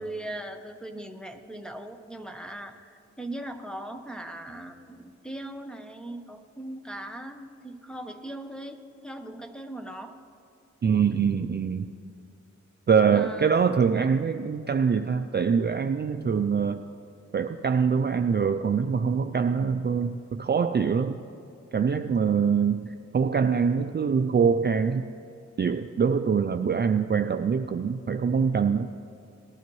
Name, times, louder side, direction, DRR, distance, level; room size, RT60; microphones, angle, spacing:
voice 1, 0.0-10.2 13.1-13.5, right 1 dB, 5° left, 6 dB, 0.8 m, -39 dB
voice 2, 10.8-11.9 12.9-16.8 17.3-21.2 21.7-25.1 25.6-28.9, right 6 dB, 35° right, 7 dB, 0.4 m, -24 dB
19.0 x 12.0 x 3.1 m, 2.7 s
wide cardioid pair, 110°, 29 cm